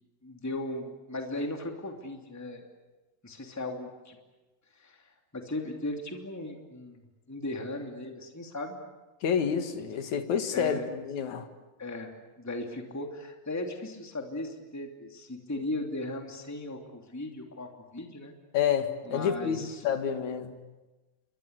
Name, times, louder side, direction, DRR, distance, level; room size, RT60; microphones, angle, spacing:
voice 1, 0.2-2.6 3.2-4.2 4.7-5.0 5.3-7.0 7.3-8.8 9.7-9.8 10.5-10.9 11.8-18.3 19.0-19.8, left 2 dB, 5° left, 3 dB, 2.4 m, -37 dB
voice 2, 9.2-11.5 18.5-20.6, left 7 dB, 60° left, 8 dB, 3.1 m, -29 dB
29.5 x 24.0 x 8.3 m, 1.1 s
omnidirectional pair, 3.9 m